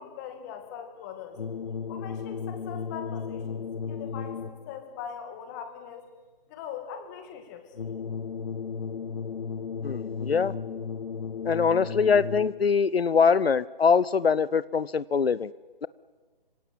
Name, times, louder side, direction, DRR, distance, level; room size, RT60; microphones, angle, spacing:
voice 1, 0.0-1.4 1.9-6.1 6.5-7.7, left 8 dB, 20° left, 6 dB, 2.3 m, -41 dB
sound 1, 1.3-4.8 7.7-12.8, left 6 dB, 55° left, 0.9 m, -35 dB
voice 2, 9.8-10.5 11.4-15.5, left 5 dB, 90° left, 19 dB, 0.7 m, -23 dB
25.5 x 17.0 x 8.8 m, 1.4 s
figure-of-eight pair, 155°, 29 cm